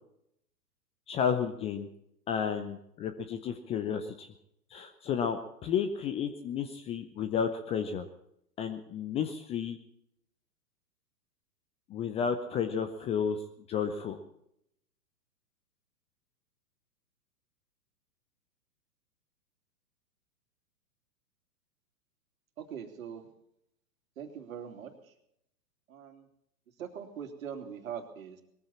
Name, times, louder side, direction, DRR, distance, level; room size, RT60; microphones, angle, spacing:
voice 1, 1.1-1.9 2.3-4.3 4.7-8.0 8.6-9.8 11.9-13.4 13.7-14.2, left 7 dB, 15° left, 8 dB, 0.6 m, -32 dB
voice 2, 22.6-23.2 24.2-24.9 25.9-26.3 26.8-28.4, right 8 dB, 55° right, 6 dB, 3.0 m, -42 dB
21.0 x 14.5 x 4.3 m, 0.75 s
figure-of-eight pair, 115°, 49 cm